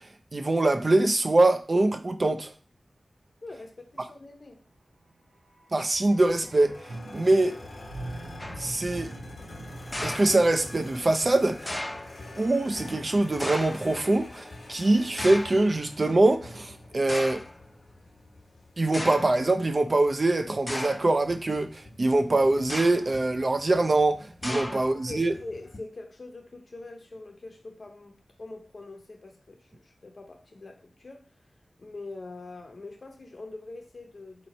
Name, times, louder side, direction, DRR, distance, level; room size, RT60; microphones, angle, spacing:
voice 1, 0.3-2.5 5.7-6.8 7.1-7.6 8.6-9.1 10.0-11.8 12.3-17.4 18.8-25.3, right 2 dB, 45° right, 0.5 m, -23 dB
voice 2, 3.4-4.6 7.1-7.3 24.5-31.3 31.8-34.5, left 2 dB, 50° left, 0.9 m, -43 dB
sound 1, 5.2-13.3 13.6-13.7, right 2 dB, 85° right, 0.9 m, -44 dB
sound 2, 5.9-25.8, left 2 dB, 75° left, 1.1 m, -46 dB
sound 3, 8.4-8.8 9.9-10.8 11.7-12.2 13.4-14.0 15.2-15.7 16.5-16.6 17.1-17.6 18.4-18.5 18.9-19.4 20.7-21.2 22.6-23.2 24.4-25.1, left 1 dB, 20° left, 0.4 m, -35 dB
4.2 x 3.1 x 4.1 m
wide cardioid pair, 75°, 0 cm